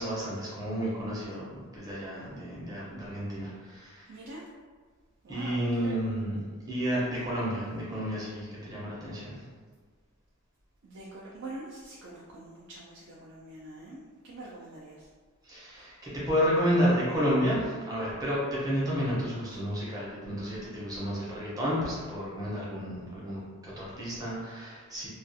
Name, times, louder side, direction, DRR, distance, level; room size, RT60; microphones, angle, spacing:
voice 1, 0.0-4.1 5.3-6.4 6.7-9.4 15.4-25.1, equal, 15° right, -7 dB, 0.7 m, -31 dB
voice 2, 4.1-4.5 5.2-5.9 10.8-15.1, right 2 dB, 55° right, -6 dB, 0.4 m, -44 dB
2.4 x 2.3 x 2.6 m, 1.5 s
head